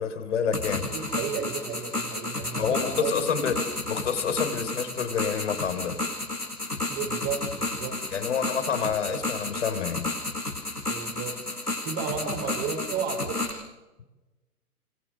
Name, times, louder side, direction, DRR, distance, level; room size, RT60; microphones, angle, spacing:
voice 1, 0.0-0.9 2.6-6.0 8.1-10.1, left 6 dB, 50° left, 9 dB, 4.5 m, -28 dB
sound 1, 0.5-13.5, left 2 dB, 85° left, 7.3 m, -32 dB
voice 2, 0.8-3.2 6.9-8.0 10.9-13.5, right 6 dB, 20° right, 7 dB, 4.9 m, -33 dB
27.5 x 27.0 x 6.6 m, 1.1 s
figure-of-eight pair, 125°, 45 cm